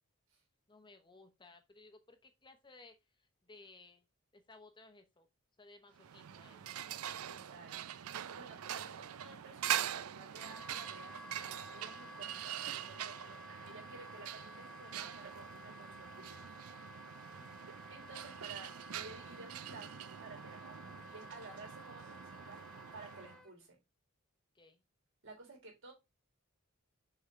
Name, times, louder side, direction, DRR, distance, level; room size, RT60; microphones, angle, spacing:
voice 1, 0.7-4.0 4.3-5.3 5.6-6.8 8.5-8.9 17.2-17.5 24.5-24.8, left 3 dB, 20° left, 0.9 m, -60 dB
sound 1, 6.0-23.4, right 10 dB, 85° right, 0.5 m, -44 dB
voice 2, 7.2-8.0 8.3-11.2 11.7-13.4 13.7-16.5 17.9-22.6 22.9-23.8 25.2-25.9, right 3 dB, 65° right, 3.5 m, -54 dB
Wind instrument woodwind instrument, 10.3-23.5, left 1 dB, 5° left, 0.5 m, -54 dB
6.8 x 3.8 x 4.4 m
head